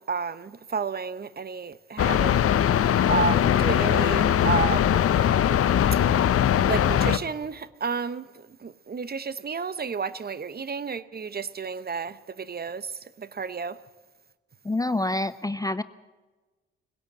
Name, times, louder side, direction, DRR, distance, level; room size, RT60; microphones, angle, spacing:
voice 1, 0.0-2.7 3.1-5.0 6.7-13.8, right 5 dB, 30° right, 1.0 m, -31 dB
sound 1, 2.0-7.2, left 10 dB, 50° left, 0.9 m, -21 dB
voice 2, 14.6-15.8, left 2 dB, 10° left, 0.6 m, -27 dB
20.5 x 17.0 x 7.6 m
hypercardioid pair, 45°, 30 cm